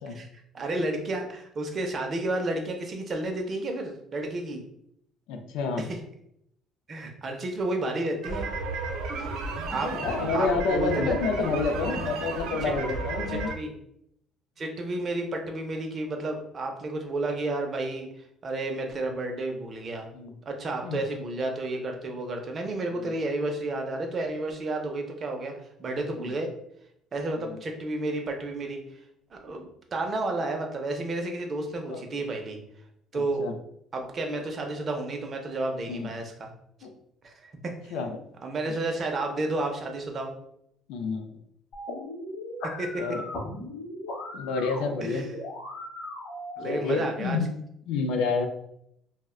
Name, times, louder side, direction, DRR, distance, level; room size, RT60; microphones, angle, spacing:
voice 1, 0.5-4.6 5.8-5.9 6.9-8.5 9.7-9.9 10.3-11.2 12.6-12.7 13.3-13.7 14.6-20.1 20.5-25.5 25.8-26.5 27.1-29.0 29.3-32.6 33.1-33.4 33.9-36.5 37.2-38.0 38.4-40.3 42.8-42.9 45.0-45.3 46.6-47.4, right 2 dB, 25° right, 3 dB, 0.4 m, -31 dB
voice 2, 5.3-5.9 9.7-13.6 20.1-20.4 20.8-21.0 23.0-23.1 26.2-26.3 27.4-27.6 31.9-32.2 33.1-33.6 35.9-36.1 36.8-36.9 37.9-38.2 40.9-41.3 43.0-43.2 44.3-45.2 46.6-47.5 47.9-48.5, left 4 dB, 75° left, 5 dB, 0.4 m, -29 dB
sound 1, 8.2-13.5, right 3 dB, 85° right, 0.5 m, -33 dB
sound 2, 41.7-46.7, left 1 dB, 50° left, 0.7 m, -38 dB
2.4 x 2.1 x 3.6 m, 0.74 s
cardioid pair, 175°, 0 cm